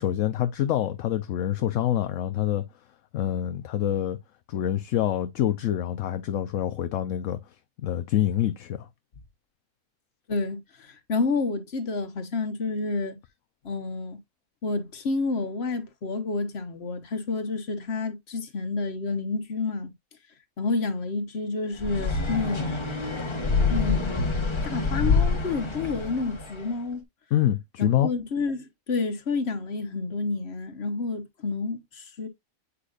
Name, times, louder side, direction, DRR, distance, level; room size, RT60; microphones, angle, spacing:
voice 1, 0.0-2.6 3.1-4.2 4.5-7.4 7.8-8.9 27.3-28.1, left 11 dB, 70° left, 1.0 m, -26 dB
voice 2, 10.3-13.2 13.6-14.2 14.6-19.9 20.6-22.8 23.7-24.2 24.6-27.0 27.8-32.3, left 3 dB, 50° left, 1.4 m, -29 dB
sound 1, 21.8-26.7, left 4 dB, 20° left, 1.1 m, -26 dB
8.4 x 4.8 x 2.4 m
omnidirectional pair, 1.5 m